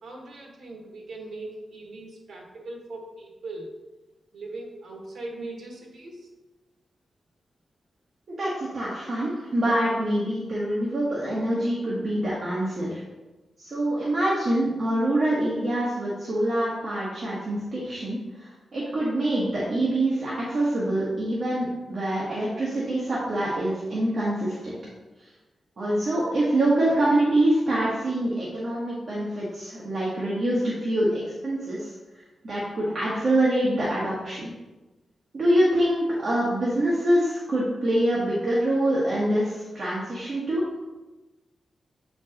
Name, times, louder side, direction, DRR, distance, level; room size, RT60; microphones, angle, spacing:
voice 1, 0.0-3.7 4.3-6.3, right 2 dB, 80° right, -1 dB, 1.4 m, -40 dB
voice 2, 8.3-13.0 13.6-24.8 25.8-31.9 32.4-34.5 35.3-40.6, right 1 dB, 50° right, -7 dB, 1.2 m, -25 dB
7.5 x 4.5 x 2.9 m, 1.1 s
wide cardioid pair, 155°, 0 cm